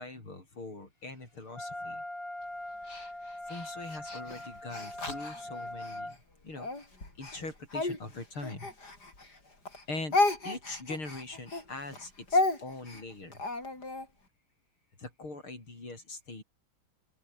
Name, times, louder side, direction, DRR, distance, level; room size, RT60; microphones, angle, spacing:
voice 1, 0.0-2.0 3.4-6.2 6.4-6.7 7.2-8.7 9.9-10.2 10.4-13.4 15.0-16.4, left 2 dB, 80° left, 8.2 m, -42 dB
Wind instrument woodwind instrument, 1.5-6.2, left 1 dB, 25° left, 6.8 m, -41 dB
Speech, 2.9-6.0 6.6-9.4 9.6-14.1, left 2 dB, 50° left, 6.4 m, -33 dB
open air
omnidirectional pair, 2.3 m